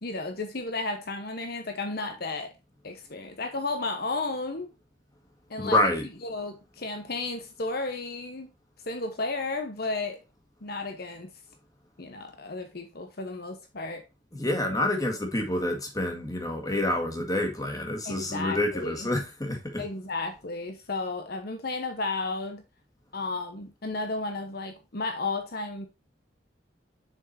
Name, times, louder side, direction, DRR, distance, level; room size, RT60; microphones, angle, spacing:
voice 1, 0.0-2.5 2.8-4.7 5.5-5.8 6.2-8.5 8.9-10.2 10.6-11.3 12.0-14.0 18.0-19.1 19.8-22.6 23.1-25.9, left 3 dB, 55° left, 1.1 m, -33 dB
voice 2, 5.6-6.0 14.3-19.8, left 1 dB, 20° left, 1.9 m, -27 dB
7.3 x 6.4 x 2.7 m
head